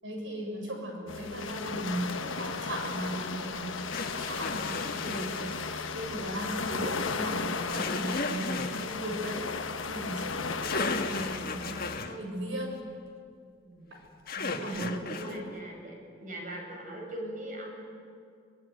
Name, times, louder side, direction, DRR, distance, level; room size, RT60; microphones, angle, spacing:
voice 1, 0.0-12.8 14.4-15.5, right 1 dB, 75° right, 2 dB, 6.9 m, -37 dB
sound 1, 1.1-12.0, left 4 dB, 90° left, 1.2 m, -35 dB
sound 2, 2.4-2.5 3.9-5.6 7.7-8.9 10.3-10.4 10.6-12.2 14.3-15.4, left 3 dB, 50° left, 1.6 m, -35 dB
voice 2, 13.6-14.0 14.5-14.8 15.1-17.8, right 1 dB, 45° right, 1 dB, 6.5 m, -41 dB
25.0 x 19.5 x 9.5 m, 2.2 s
head